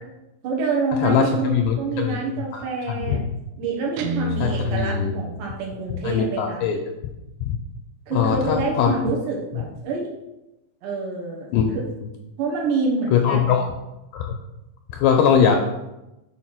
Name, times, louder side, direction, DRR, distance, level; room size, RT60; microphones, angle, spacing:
voice 1, 0.4-3.2 3.6-6.6 8.1-10.1 10.8-11.5 11.7-11.8 12.4-13.6, right 4 dB, 70° right, -1 dB, 3.3 m, -27 dB
voice 2, 1.0-2.2 2.5-3.2 4.4-5.1 6.0-6.8 7.4-7.6 8.1-8.9 11.5-11.8 13.1-13.6 14.1-14.3 14.9-15.6, left 7 dB, 85° left, 3 dB, 2.5 m, -21 dB
Guitar, 4.0-6.0, right 1 dB, 85° right, 2.4 m, -30 dB
7.9 x 4.8 x 5.8 m, 0.96 s
omnidirectional pair, 5.4 m